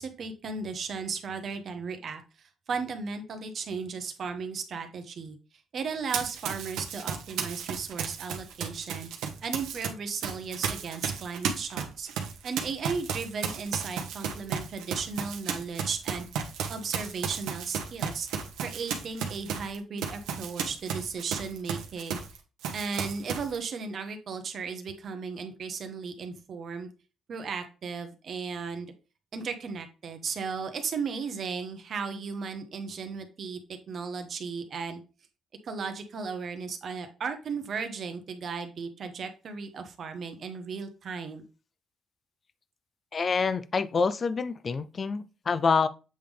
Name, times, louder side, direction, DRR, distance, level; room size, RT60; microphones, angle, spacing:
voice 1, 0.0-5.4 5.7-9.1 9.4-12.1 12.4-16.3 16.7-18.3 18.6-22.2 22.7-26.9 27.3-28.9 29.3-35.0 35.6-41.4, right 5 dB, 55° right, 1.1 m, -35 dB
Run, 6.1-9.9 10.2-22.4 22.6-23.6, right 7 dB, 90° right, 1.0 m, -34 dB
voice 2, 43.1-45.9, left 5 dB, 40° left, 0.5 m, -27 dB
7.8 x 3.6 x 3.4 m
cardioid pair, 90°, 0 cm